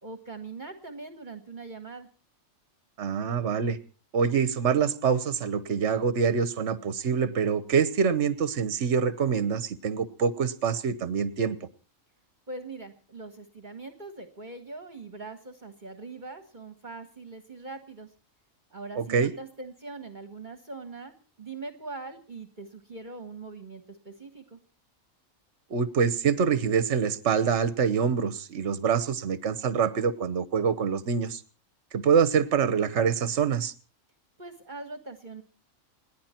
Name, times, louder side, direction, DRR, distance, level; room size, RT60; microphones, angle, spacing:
voice 1, 0.0-2.1 12.5-18.1 18.7-24.6 34.4-35.4, right 3 dB, 35° right, 8 dB, 1.6 m, -42 dB
voice 2, 3.0-3.8 4.1-11.6 19.0-19.3 25.7-31.4 31.9-33.7, right 6 dB, 60° right, 14 dB, 1.3 m, -25 dB
29.0 x 10.5 x 4.4 m, 0.37 s
omnidirectional pair, 1.4 m